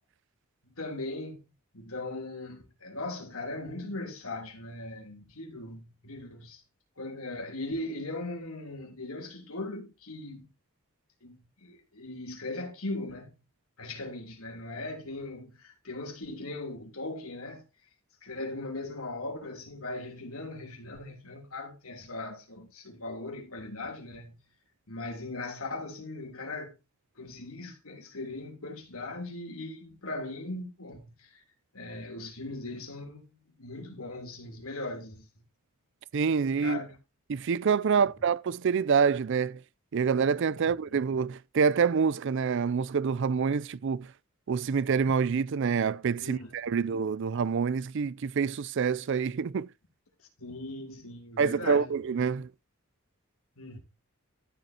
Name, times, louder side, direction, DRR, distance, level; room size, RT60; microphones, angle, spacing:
voice 1, 0.6-1.4 1.7-6.6 7.0-10.5 11.2-13.3 13.8-17.6 18.2-24.4 24.9-26.7 27.2-31.4 31.7-33.2 33.6-35.5 36.6-37.0 37.9-38.1 40.6-41.0 46.2-46.8 50.4-51.9 53.6-53.8, left 2 dB, 75° left, 3.3 m, -39 dB
voice 2, 36.1-36.8 37.3-39.6 39.9-44.1 44.5-49.7 51.4-52.5, right 6 dB, 60° right, 0.4 m, -27 dB
13.5 x 7.9 x 2.8 m
head